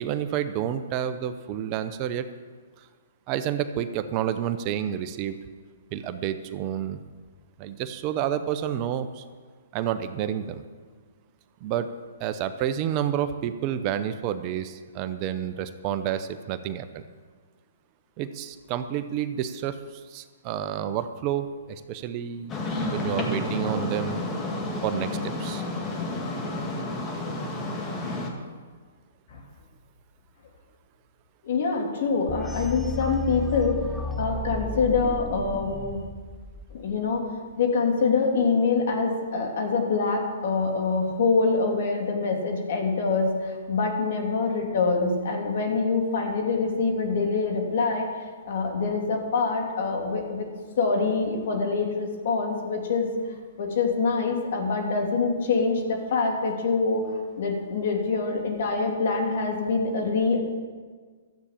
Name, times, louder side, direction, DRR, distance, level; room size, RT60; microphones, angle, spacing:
voice 1, 0.0-2.3 3.3-5.4 5.9-7.0 7.6-9.2 9.7-10.6 11.6-11.9 12.2-17.0 18.2-22.5 22.9-24.3 24.8-25.6, right 10 dB, 35° right, 11 dB, 0.7 m, -29 dB
sound 1, 22.5-28.3, left 2 dB, 20° left, 2.0 m, -30 dB
voice 2, 31.4-33.8 34.2-36.0 36.7-37.2 37.6-48.1 48.4-50.5 50.8-53.1 53.6-60.4, left 4 dB, 60° left, 2 dB, 2.8 m, -25 dB
sound 2, 32.3-37.2, left 3 dB, ahead, 0.6 m, -34 dB
13.0 x 8.2 x 7.4 m, 1.5 s
hypercardioid pair, 130°, 0 cm